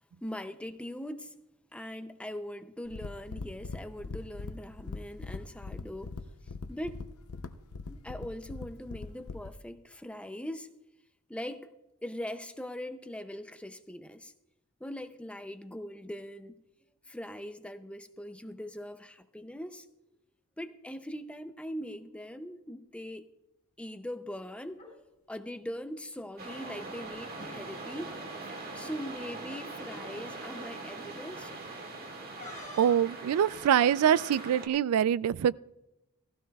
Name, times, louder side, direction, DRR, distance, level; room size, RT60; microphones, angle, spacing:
voice 1, 0.2-1.4 1.7-6.2 6.7-7.0 7.9-10.7 11.3-11.7 12.0-14.3 14.8-16.6 17.1-19.9 20.6-23.3 23.8-24.9 25.3-28.2 28.7-31.5, equal, 5° left, 0.5 m, -41 dB
sound 1, 2.9-9.6, left 3 dB, 75° left, 0.6 m, -42 dB
sound 2, 24.7-24.9 26.2-27.1 27.4-27.5 27.9-28.1 29.1-29.2 29.8-30.1 32.4-33.1, left 2 dB, 35° left, 5.6 m, -48 dB
sound 3, 26.4-34.7, right 3 dB, 45° right, 1.9 m, -42 dB
voice 2, 32.8-35.5, right 9 dB, 75° right, 0.3 m, -24 dB
16.0 x 15.5 x 2.3 m
head